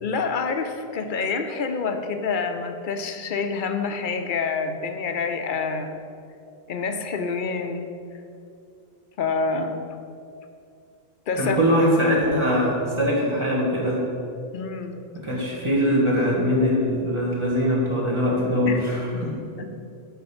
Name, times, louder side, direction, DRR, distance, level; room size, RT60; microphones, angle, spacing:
voice 1, 0.0-6.0 6.7-7.9 9.2-9.8 11.3-11.6 14.5-15.0 18.7-18.8 19.1-19.2 19.6-19.7, left 5 dB, 55° left, 7 dB, 0.7 m, -27 dB
voice 2, 11.4-14.0 15.1-19.3, equal, 25° right, -6 dB, 1.7 m, -22 dB
7.9 x 4.5 x 6.8 m, 2.6 s
omnidirectional pair, 1.1 m